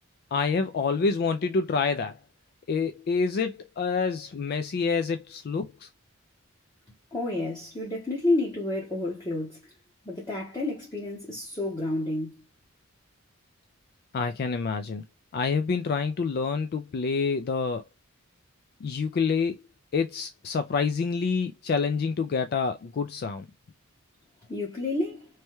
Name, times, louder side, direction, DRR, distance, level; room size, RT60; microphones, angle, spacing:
voice 1, 0.3-2.2 2.7-5.9 14.1-15.0 15.3-17.8 18.8-19.6 19.9-23.5, left 5 dB, 50° left, 0.3 m, -27 dB
voice 2, 7.1-9.6 10.0-12.3 24.5-25.3, left 2 dB, 20° left, 0.9 m, -30 dB
3.2 x 2.2 x 2.9 m
head